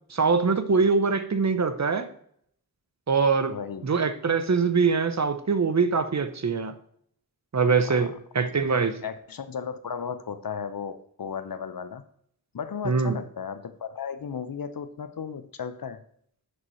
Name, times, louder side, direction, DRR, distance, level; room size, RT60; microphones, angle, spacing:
voice 1, 0.1-2.1 3.1-3.5 3.8-6.7 7.5-9.0 12.8-13.2, right 5 dB, 45° right, 10 dB, 0.7 m, -23 dB
voice 2, 3.5-3.9 7.8-8.5 9.0-12.0 12.5-16.0, left 6 dB, 60° left, 11 dB, 0.6 m, -35 dB
11.0 x 4.2 x 3.0 m, 0.66 s
wide cardioid pair, 60°, 38 cm